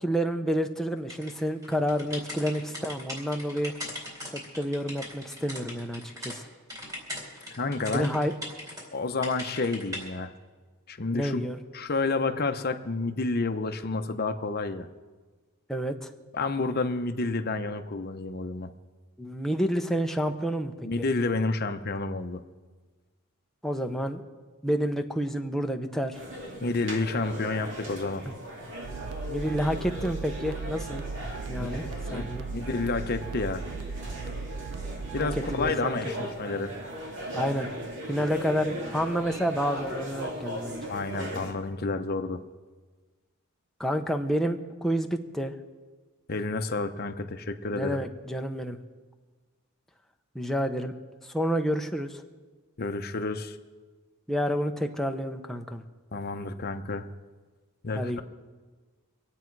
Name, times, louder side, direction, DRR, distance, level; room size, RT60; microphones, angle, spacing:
voice 1, 0.0-3.7 4.3-6.4 7.9-8.3 11.1-11.6 15.7-16.0 19.2-20.7 23.6-24.2 24.6-26.2 28.2-28.3 29.3-31.0 31.5-32.5 35.2-36.0 37.3-37.7 38.1-40.8 43.8-45.5 47.7-48.8 50.3-50.9 51.3-52.2 54.3-55.8 57.9-58.2, equal, ahead, 4 dB, 0.9 m, -29 dB
sound 1, 1.1-6.4 6.7-8.8 9.2-10.0, left 1 dB, 15° right, 4.1 m, -39 dB
voice 2, 7.6-8.2 8.9-10.3 10.9-11.4 11.7-14.9 16.3-18.7 20.8-22.4 26.6-28.2 31.5-33.6 35.1-36.7 40.9-42.4 46.3-48.0 52.8-53.6 56.1-57.1 57.8-58.2, left 3 dB, 45° left, 7 dB, 0.9 m, -30 dB
sound 2, 26.1-41.5, equal, 55° right, 2.7 m, -38 dB
sound 3, 28.8-35.7, right 4 dB, 90° right, 0.4 m, -37 dB
25.5 x 8.6 x 4.7 m, 1.4 s
head